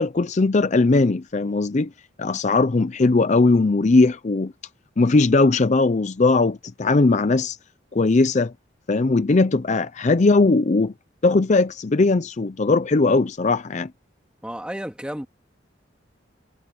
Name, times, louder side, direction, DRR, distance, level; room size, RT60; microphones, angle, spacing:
voice 1, 0.0-1.9 2.2-4.5 5.0-7.6 7.9-8.5 8.9-10.9 11.2-13.9, left 3 dB, 40° left, 0.5 m, -19 dB
voice 2, 14.4-15.3, equal, 5° right, 2.2 m, -32 dB
head